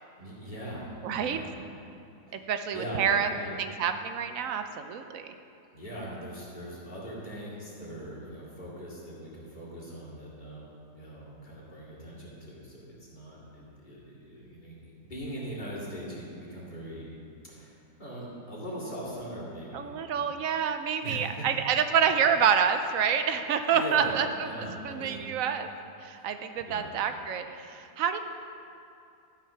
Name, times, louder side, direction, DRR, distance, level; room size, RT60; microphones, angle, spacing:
voice 1, 0.2-0.9 1.2-1.5 2.3-2.4 2.7-3.6 5.7-17.1 17.5-17.7 18.0-19.9 20.1-20.3 21.0-21.4 23.7-24.1 24.4-25.2 26.1-26.3 26.6-26.9, equal, 30° left, -7 dB, 2.6 m, -40 dB
voice 2, 1.0-1.4 2.3-5.3 19.7-24.5 24.8-25.7 26.0-28.2, right 7 dB, 70° right, 8 dB, 0.9 m, -28 dB
12.5 x 6.0 x 5.7 m, 2.6 s
omnidirectional pair, 1.7 m